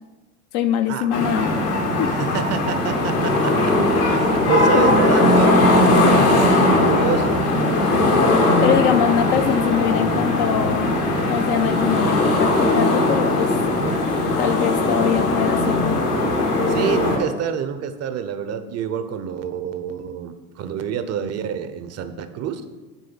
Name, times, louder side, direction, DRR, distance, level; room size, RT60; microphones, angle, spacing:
voice 1, 0.5-1.6 2.0-2.1 4.7-5.0 5.9-6.3 8.6-10.9 11.3-13.5 14.4-16.0, left 9 dB, 40° left, 9 dB, 0.5 m, -23 dB
sound 1, 1.1-17.2, left 2 dB, 75° left, 2.0 m, -19 dB
voice 2, 2.1-5.9 6.7-7.4 16.7-22.6, right 8 dB, 35° right, 10 dB, 0.7 m, -27 dB
8.3 x 3.7 x 5.8 m, 1.1 s
hypercardioid pair, 80°, 45 cm